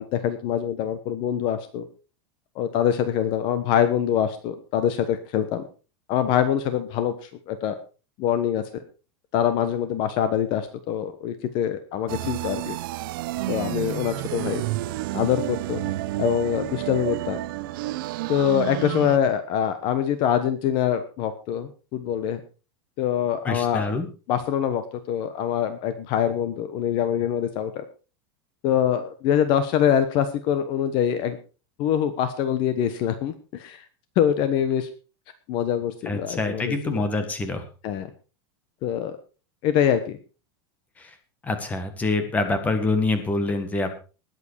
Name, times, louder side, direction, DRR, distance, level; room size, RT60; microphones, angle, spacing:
voice 1, 0.0-1.9 2.5-5.6 6.1-7.8 8.2-8.6 9.3-12.8 13.5-14.6 15.1-15.8 16.2-17.4 18.3-22.4 23.0-23.9 24.3-27.8 28.6-31.4 31.8-33.8 34.2-34.9 35.5-36.9 37.8-38.1 38.8-39.2 39.6-40.2, left 9 dB, 35° left, 11 dB, 1.2 m, -24 dB
sound 1, 12.1-19.2, right 16 dB, 50° right, 0.8 m, -30 dB
voice 2, 23.5-24.1 36.1-37.6 41.0-41.1 41.4-44.0, left 3 dB, 10° left, 8 dB, 1.7 m, -26 dB
20.0 x 8.2 x 4.7 m, 0.34 s
supercardioid pair, 175°, 14 cm